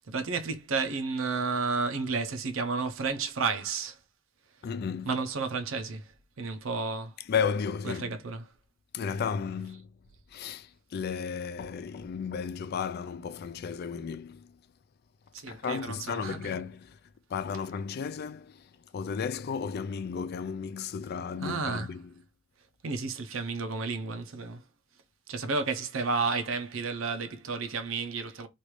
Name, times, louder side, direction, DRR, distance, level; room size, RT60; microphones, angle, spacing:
voice 1, 0.0-4.0 5.1-6.0 6.4-7.1 7.9-8.4 15.3-16.4 21.4-21.9 22.8-24.6 25.3-28.5, right 4 dB, 85° right, 0.6 m, -31 dB
voice 2, 4.6-5.2 7.2-8.1 8.9-10.0 10.3-14.6 15.5-17.0 17.3-22.1, left 6 dB, 50° left, 0.3 m, -34 dB
3.2 x 2.5 x 3.0 m
head